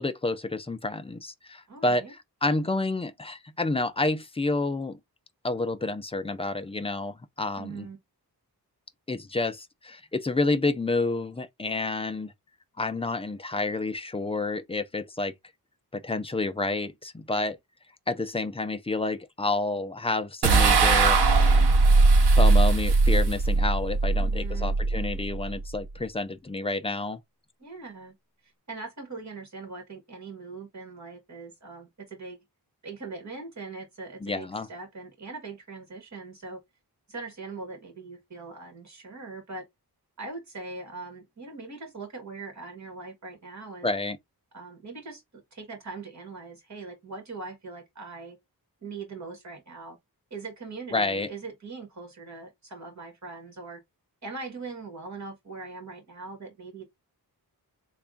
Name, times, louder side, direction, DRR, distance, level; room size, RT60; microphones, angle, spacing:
voice 1, 0.0-5.0 5.4-7.9 9.1-12.3 12.8-15.3 15.9-17.6 18.1-21.6 22.4-27.2 34.2-34.7 43.8-44.2 50.9-51.3, left 2 dB, 15° left, 0.3 m, -29 dB
voice 2, 1.7-2.1 7.6-8.0 24.2-24.8 27.6-28.2 28.7-32.4 32.8-36.6 37.1-39.6 40.2-43.9 44.5-48.4 48.8-50.0 50.3-53.8 54.2-56.9, right 3 dB, 45° right, 1.8 m, -41 dB
sound 1, 20.4-25.8, right 3 dB, 90° right, 0.8 m, -20 dB
3.4 x 2.4 x 3.7 m
wide cardioid pair, 140°, 38 cm